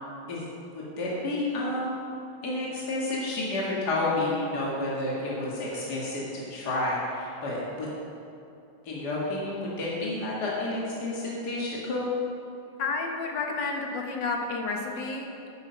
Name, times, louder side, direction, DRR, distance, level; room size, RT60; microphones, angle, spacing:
voice 1, 1.0-2.0 2.4-7.9 8.9-12.0, left 2 dB, 60° left, -5 dB, 2.4 m, -30 dB
voice 2, 12.8-15.5, left 3 dB, 80° left, 1 dB, 2.0 m, -31 dB
9.8 x 9.6 x 5.8 m, 2.7 s
omnidirectional pair, 1.9 m